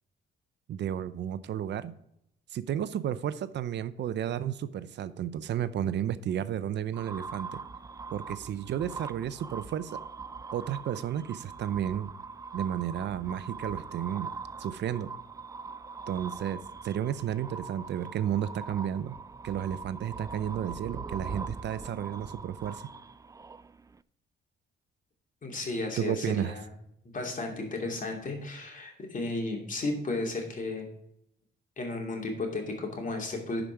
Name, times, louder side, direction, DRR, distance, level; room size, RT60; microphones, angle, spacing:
voice 1, 0.7-2.0 2.5-7.6 8.1-10.0 10.5-12.1 12.5-14.3 14.6-15.1 16.1-19.1 19.4-22.9 26.0-26.6, right 10 dB, 60° right, 15 dB, 0.6 m, -32 dB
sound 1, 6.9-24.0, right 4 dB, 15° right, 0.3 m, -42 dB
voice 2, 25.4-26.7 27.1-30.9 31.8-33.6, left 2 dB, 40° left, 2 dB, 2.8 m, -34 dB
11.0 x 5.0 x 4.6 m, 0.75 s
cardioid pair, 90°, 20 cm